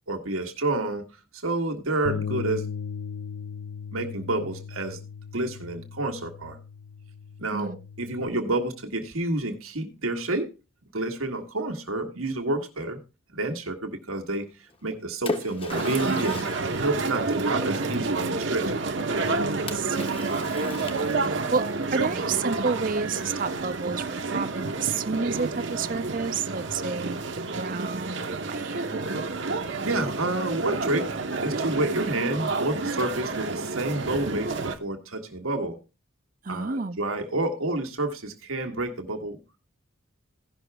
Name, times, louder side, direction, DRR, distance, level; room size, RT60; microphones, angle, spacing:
voice 1, 0.1-1.0 1.4-2.6 3.9-5.0 5.3-6.6 7.4-7.7 8.0-10.5 10.9-13.0 13.3-14.4 14.8-16.4 16.7-18.7 29.8-31.1 31.4-34.5 34.8-35.8 36.5-39.4, right 2 dB, 85° right, 1.6 m, -29 dB
Bass guitar, 2.1-8.3, left 6 dB, 60° left, 0.4 m, -37 dB
Splash splatter, 14.7-17.9 19.7-21.6, left 2 dB, 25° left, 0.9 m, -37 dB
sound 1, 15.7-34.7, right 3 dB, 60° right, 1.0 m, -29 dB
voice 2, 19.7-21.7 21.9-29.0 36.4-37.0, right 4 dB, 40° right, 0.5 m, -31 dB
16.5 x 5.9 x 3.4 m
head